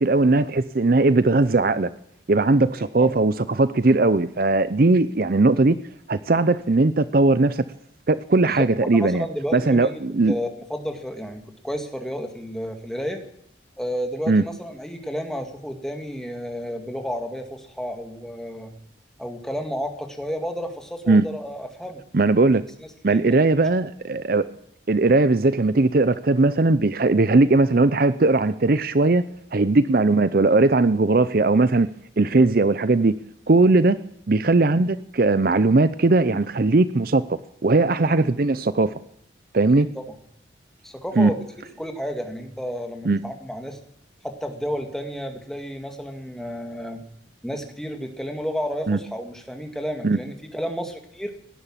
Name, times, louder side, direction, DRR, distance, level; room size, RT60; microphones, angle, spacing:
voice 1, 0.0-1.9 2.3-5.8 6.1-7.6 8.1-9.3 9.5-10.3 14.3-14.4 21.1-21.2 22.1-22.6 23.0-24.5 24.9-29.2 29.5-31.9 32.2-33.2 33.5-34.0 34.3-38.9 39.5-39.9 41.2-41.3 43.0-43.2 48.9-49.0 50.0-50.2, right 3 dB, 50° right, 14 dB, 0.6 m, -19 dB
voice 2, 2.7-3.1 8.5-8.7 8.9-10.0 10.3-13.2 13.8-18.7 19.2-22.0 23.1-23.3 39.7-39.8 40.8-41.4 41.8-43.8 44.2-47.0 47.4-51.3, equal, 5° left, 4 dB, 2.1 m, -31 dB
17.5 x 11.0 x 7.4 m, 0.72 s
head